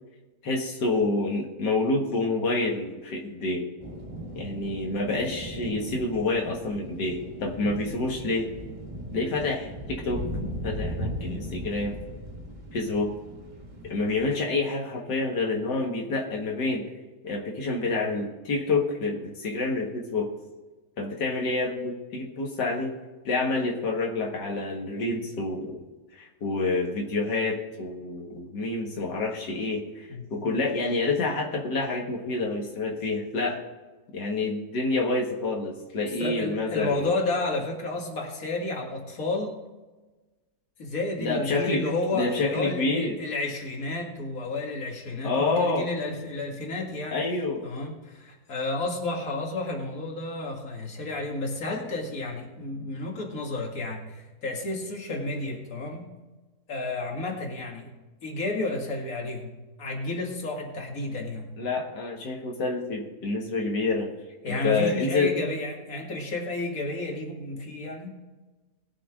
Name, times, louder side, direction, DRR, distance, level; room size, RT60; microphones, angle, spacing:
voice 1, 0.4-3.7 4.4-8.5 9.1-10.2 10.6-11.9 12.7-13.1 13.8-16.9 17.2-20.3 21.0-22.9 23.3-25.8 26.2-33.6 34.1-37.1 41.2-41.8 42.1-43.1 45.2-45.9 47.1-47.7 61.6-64.1 64.4-65.3, left 3 dB, 90° left, -1 dB, 2.2 m, -28 dB
sound 1, 3.8-14.3, equal, 30° right, 1.6 m, -37 dB
voice 2, 30.1-30.5 36.2-39.6 40.8-47.2 47.6-56.0 56.7-57.9 58.2-61.4 64.4-68.2, left 2 dB, 55° left, 0 dB, 2.5 m, -31 dB
20.5 x 6.9 x 3.7 m, 1.2 s
omnidirectional pair, 1.8 m